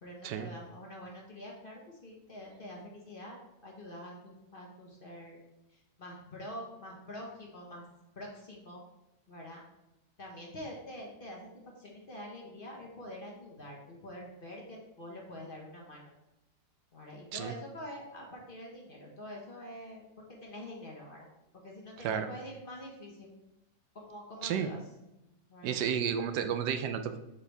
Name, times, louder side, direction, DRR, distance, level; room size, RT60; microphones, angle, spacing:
voice 1, 0.0-5.4 5.7-7.8 8.2-8.8 9.3-9.6 10.2-11.5 11.8-16.0 16.9-21.3 21.6-23.3 23.9-24.8 25.5-25.8, left 1 dB, 35° left, -2 dB, 1.1 m, -46 dB
voice 2, 25.6-27.2, right 8 dB, 80° right, 8 dB, 1.2 m, -32 dB
6.8 x 4.6 x 3.4 m, 0.95 s
omnidirectional pair, 1.8 m